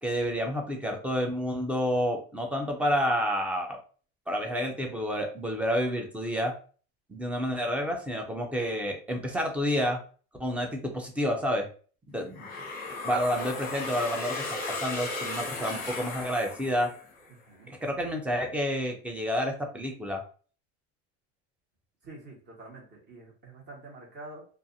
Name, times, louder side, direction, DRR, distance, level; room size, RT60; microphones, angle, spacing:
voice 1, 0.0-3.8 4.3-6.5 7.1-10.0 10.4-11.7 12.1-12.5 13.0-16.9 17.7-20.2, equal, 5° right, 3 dB, 0.3 m, -29 dB
sound 1, 12.4-17.3, left 3 dB, 25° left, 0.8 m, -36 dB
voice 2, 22.0-24.5, right 2 dB, 30° right, -2 dB, 1.1 m, -47 dB
2.5 x 2.4 x 2.5 m, 0.41 s
supercardioid pair, 130°, 35 cm